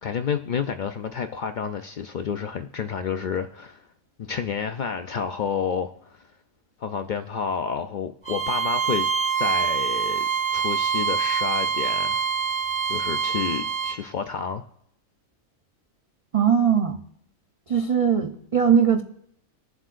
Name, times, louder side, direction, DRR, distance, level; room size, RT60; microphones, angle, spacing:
voice 1, 0.0-3.8 4.2-6.2 6.8-9.1 9.4-10.2 10.5-12.2 12.9-14.6, left 6 dB, 85° left, 7 dB, 0.4 m, -29 dB
Bowed string instrument, 8.2-14.0, right 6 dB, 20° left, 1.8 m, -25 dB
voice 2, 16.3-17.0 17.7-19.0, right 7 dB, 50° right, 6 dB, 0.4 m, -20 dB
22.0 x 7.5 x 2.5 m, 0.72 s
omnidirectional pair, 1.4 m